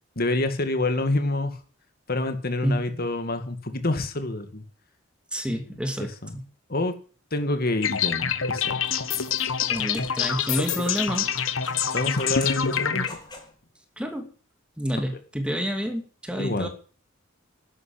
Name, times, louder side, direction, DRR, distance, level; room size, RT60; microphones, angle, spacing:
voice 1, 0.2-1.6 2.1-4.6 5.5-5.6 6.0-6.3 6.7-6.9 7.3-8.8 11.9-13.1 16.4-16.7, left 2 dB, 50° left, 7 dB, 2.2 m, -27 dB
voice 2, 2.6-3.0 5.3-6.4 9.7-11.3 14.0-14.3 14.8-16.7, equal, 5° right, 5 dB, 2.6 m, -29 dB
sound 1, 7.8-13.1, left 7 dB, 80° left, 1.4 m, -26 dB
sound 2, 8.6-13.6, left 3 dB, 20° left, 3.9 m, -44 dB
12.0 x 11.0 x 8.7 m, 0.39 s
head